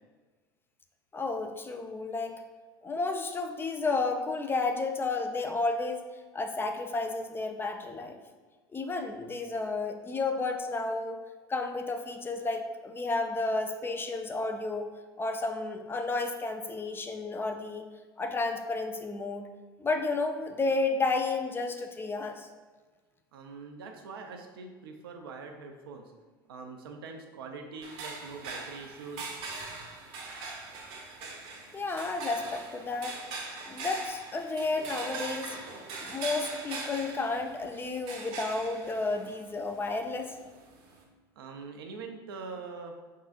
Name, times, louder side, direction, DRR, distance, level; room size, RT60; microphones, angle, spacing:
voice 1, 1.1-2.4 2.8-6.0 6.3-8.2 8.7-11.2 11.5-14.9 15.2-17.8 18.2-19.5 19.8-22.5 31.7-33.2 33.7-35.6 36.0-40.4, left 3 dB, 15° left, 5 dB, 0.4 m, -32 dB
voice 2, 23.3-26.1 26.5-29.3 41.4-42.9, right 4 dB, 70° right, 4 dB, 0.6 m, -43 dB
sound 1, 27.8-41.0, right 3 dB, 55° right, 0.9 m, -42 dB
5.5 x 3.7 x 2.4 m, 1.4 s
figure-of-eight pair, 75°, 13 cm